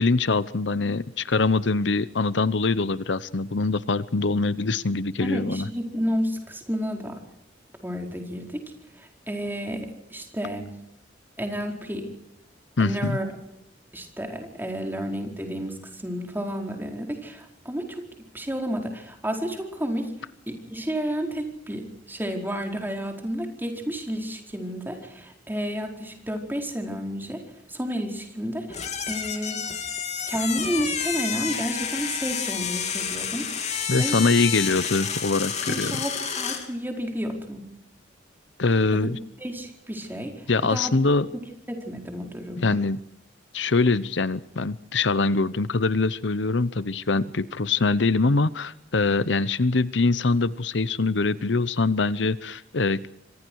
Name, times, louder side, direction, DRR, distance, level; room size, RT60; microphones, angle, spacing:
voice 1, 0.0-5.7 12.8-13.2 33.9-36.0 38.6-39.2 40.5-41.3 42.6-43.0 43.5-53.1, left 3 dB, 70° left, 16 dB, 0.9 m, -23 dB
voice 2, 5.2-7.2 7.8-8.6 8.9-10.7 11.4-12.1 12.8-13.3 13.9-18.0 18.3-20.1 20.5-27.4 27.7-29.7 30.3-34.2 35.7-37.6 38.9-39.1 39.4-41.0 41.7-42.8, equal, 10° right, 2 dB, 4.7 m, -31 dB
sound 1, 28.7-36.7, left 7 dB, 40° left, 3.1 m, -30 dB
27.5 x 25.5 x 4.7 m, 0.79 s
head